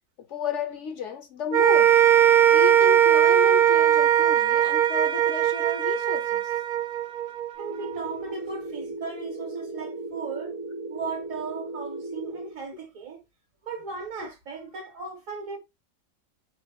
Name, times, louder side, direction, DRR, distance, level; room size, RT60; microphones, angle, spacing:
voice 1, 0.3-2.0 2.5-6.4 14.2-14.3, left 7 dB, 65° left, 0.9 m, -32 dB
sound 1, 1.5-7.9, right 10 dB, 85° right, 1.1 m, -20 dB
sound 2, 7.6-12.5, right 2 dB, 20° right, 0.6 m, -36 dB
voice 2, 7.6-10.5 10.9-13.2 13.6-15.6, right 5 dB, 65° right, 1.6 m, -37 dB
4.2 x 3.1 x 3.4 m
omnidirectional pair, 1.5 m